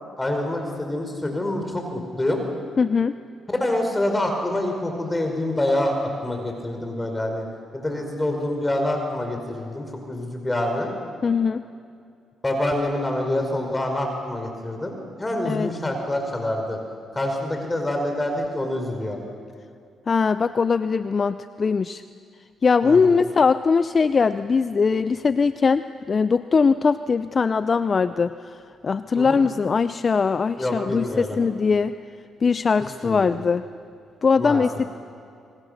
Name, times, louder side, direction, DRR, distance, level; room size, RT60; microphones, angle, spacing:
voice 1, 0.2-2.4 3.5-6.0 6.2-7.4 7.7-10.9 12.4-14.9 15.2-16.8 17.1-19.2 22.8-23.2 29.2-29.4 30.6-31.4 33.0-33.4 34.4-34.6, left 1 dB, 20° left, 3 dB, 4.8 m, -26 dB
voice 2, 2.8-3.1 11.2-11.6 15.4-15.7 20.1-22.0 22.6-28.6 28.8-31.9 32.4-33.6 34.2-34.7, left 5 dB, 45° left, 12 dB, 0.6 m, -21 dB
26.5 x 23.5 x 6.6 m, 2.4 s
supercardioid pair, 65°, 0 cm